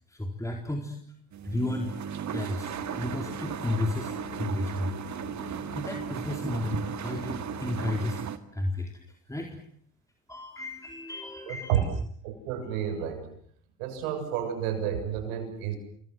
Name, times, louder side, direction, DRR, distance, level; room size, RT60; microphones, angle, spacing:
voice 1, 0.1-1.0 1.4-5.0 5.5-8.2 8.5-8.9 9.3-9.6 10.3-11.8, left 1 dB, 10° left, 3 dB, 4.3 m, -33 dB
sound 1, 1.3-8.4, right 8 dB, 45° right, 2.2 m, -36 dB
sound 2, 2.7-8.2, left 12 dB, 70° left, 2.3 m, -46 dB
voice 2, 11.5-11.8 12.2-13.3 13.8-15.8, right 9 dB, 85° right, 7 dB, 7.0 m, -30 dB
28.5 x 24.0 x 7.9 m, 0.63 s
supercardioid pair, 80°, 39 cm